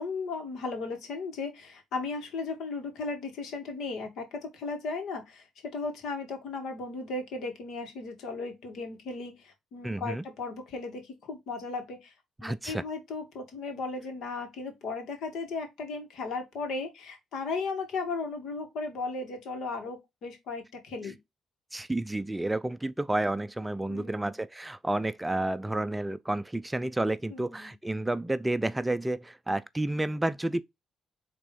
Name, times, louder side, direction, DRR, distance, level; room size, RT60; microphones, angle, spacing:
voice 1, 0.0-5.5 5.7-12.1 12.4-21.2 23.9-24.4 27.3-27.7, left 3 dB, 75° left, 2.4 m, -36 dB
voice 2, 9.8-10.2 12.4-12.8 21.7-30.6, right 1 dB, 10° right, 0.4 m, -30 dB
5.4 x 3.7 x 5.2 m
cardioid pair, 90°, 0 cm